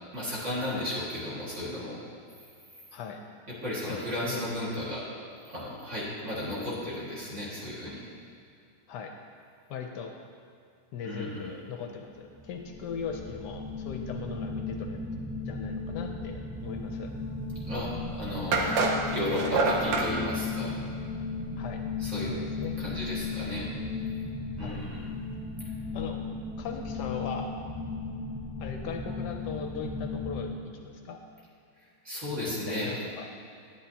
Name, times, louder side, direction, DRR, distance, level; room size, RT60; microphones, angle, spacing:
voice 1, 0.1-2.0 3.5-5.0 5.4-8.0 11.0-11.5 17.7-18.8 19.1-20.8 22.0-22.3 22.8-23.7 24.6-25.1 32.0-33.0, left 1 dB, 40° right, -7 dB, 2.2 m, -34 dB
voice 2, 3.8-4.5 8.9-9.1 9.7-10.1 10.9-15.0 15.4-17.1 18.5-18.6 21.6-21.8 22.3-22.7 24.6-24.8 25.9-26.2 26.6-27.5 28.6-30.5 30.8-31.2 32.4-33.3, left 6 dB, 70° left, 3 dB, 1.1 m, -39 dB
sound 1, 12.3-30.5, left 3 dB, 5° right, 0.8 m, -36 dB
sound 2, 17.7-17.8 18.5-20.1, right 3 dB, 80° right, 1.5 m, -26 dB
10.5 x 8.0 x 2.8 m, 2.5 s
omnidirectional pair, 2.1 m